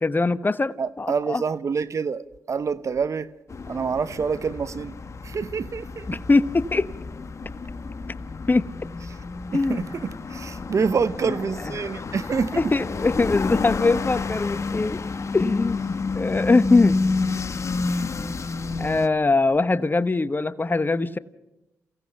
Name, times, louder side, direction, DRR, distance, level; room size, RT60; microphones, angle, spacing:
voice 1, 0.0-1.4 6.1-6.9 8.5-8.7 9.5-9.9 11.3-11.7 12.6-15.0 15.3-17.4 18.8-21.2, left 3 dB, 30° left, 0.9 m, -22 dB
voice 2, 0.8-3.3 3.7-4.9 5.2-6.2 9.7-12.7, right 5 dB, 50° right, 0.8 m, -27 dB
sound 1, 3.5-19.1, left 4 dB, 45° left, 1.2 m, -30 dB
29.0 x 16.5 x 5.6 m
hypercardioid pair, 40°, 7 cm